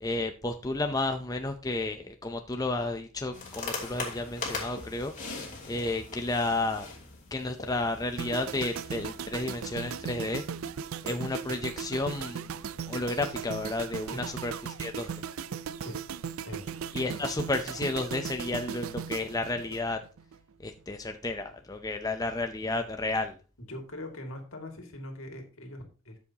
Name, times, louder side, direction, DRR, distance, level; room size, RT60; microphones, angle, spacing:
voice 1, 0.0-5.1 5.7-6.9 7.3-10.4 11.0-12.5 12.9-14.1 14.4-14.5 14.8-15.1 16.9-20.0 20.6-23.4, left 2 dB, 15° left, 6 dB, 0.6 m, -32 dB
sound 1, 3.3-10.7, left 3 dB, 35° left, 3.0 m, -41 dB
sound 2, 8.2-20.4 20.6-20.9, right 7 dB, 70° right, 0.5 m, -37 dB
voice 2, 23.6-26.2, left 1 dB, 70° left, 3 dB, 2.4 m, -41 dB
13.0 x 7.1 x 2.9 m, 0.34 s
head